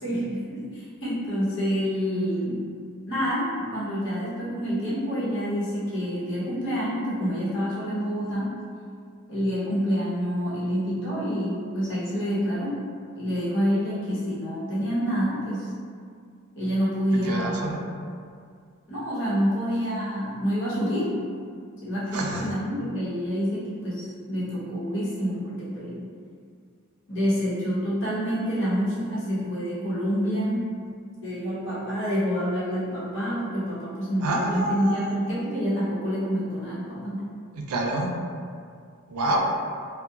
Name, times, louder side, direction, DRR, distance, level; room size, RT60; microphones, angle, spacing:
voice 1, 0.0-2.7 3.1-8.5 9.3-12.8 13.2-15.7 16.5-17.7 18.9-21.2 21.8-26.0 27.1-30.7 31.2-37.3, equal, 55° left, -9 dB, 0.8 m, -27 dB
voice 2, 17.3-17.8 22.1-22.5 34.2-35.1 37.5-38.1 39.1-39.4, right 2 dB, 90° right, 0 dB, 0.4 m, -27 dB
2.7 x 2.1 x 2.3 m, 2.2 s
head